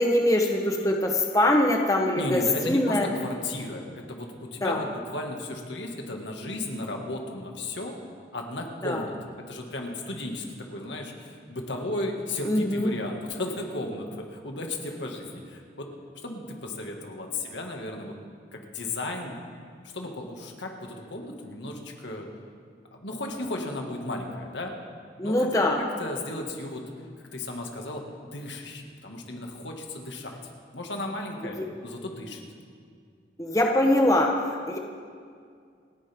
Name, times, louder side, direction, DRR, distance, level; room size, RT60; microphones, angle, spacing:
voice 1, 0.0-3.1 4.6-4.8 8.8-9.0 12.4-12.9 25.2-25.8 31.5-31.6 33.4-34.8, left 1 dB, 20° left, 1 dB, 1.0 m, -23 dB
voice 2, 2.2-7.9 8.3-9.1 9.5-15.9 16.2-18.1 18.5-19.3 19.9-22.3 22.9-24.7 25.2-25.7 26.0-26.8 27.3-28.0 28.3-30.4 30.7-31.6 31.8-32.4, left 2 dB, 80° left, 1 dB, 2.0 m, -34 dB
28.5 x 10.5 x 3.6 m, 2.2 s
head